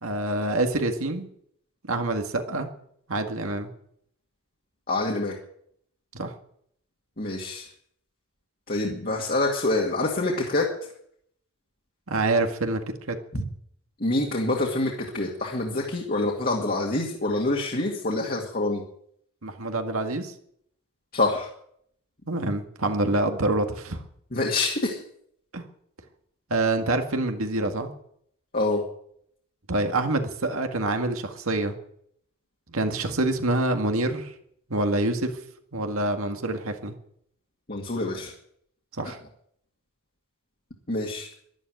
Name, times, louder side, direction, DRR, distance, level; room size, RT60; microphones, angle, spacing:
voice 1, 0.0-1.3 1.9-2.7 3.1-3.7 6.1-6.3 12.1-13.2 19.4-20.3 22.3-24.0 25.5-25.6 26.5-27.9 29.7-31.7 32.7-34.3 34.7-35.3 35.7-36.9 39.0-39.2, right 2 dB, 70° right, 5 dB, 1.9 m, -26 dB
voice 2, 4.9-5.4 7.2-7.7 8.7-10.7 13.3-13.4 14.0-18.8 21.1-21.5 24.3-25.0 28.5-28.8 37.7-38.3 40.9-41.3, left 2 dB, 40° left, -1 dB, 2.3 m, -26 dB
12.5 x 12.0 x 9.5 m, 0.69 s
head